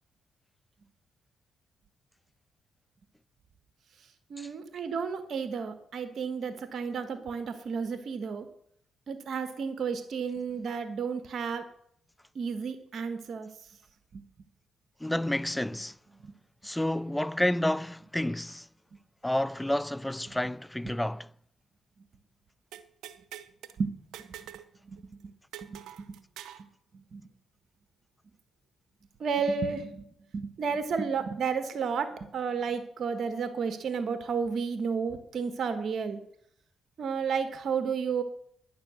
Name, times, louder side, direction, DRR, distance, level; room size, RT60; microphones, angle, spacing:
voice 1, 4.3-8.5 9.1-11.6 12.3-13.7 14.1-14.2 16.2-16.3 23.8-23.9 24.8-25.3 25.6-25.8 26.9-27.3 29.2-30.1 30.3-36.2 37.0-38.2, right 5 dB, 60° right, 1.4 m, -32 dB
voice 2, 15.0-16.0 16.6-18.7 19.2-21.3, left 1 dB, 10° left, 0.4 m, -30 dB
sound 1, 22.7-23.8 24.1-24.7 25.0-25.1 25.5-26.7, right 11 dB, 85° right, 0.8 m, -45 dB
10.5 x 10.5 x 6.4 m
supercardioid pair, 65°, 0 cm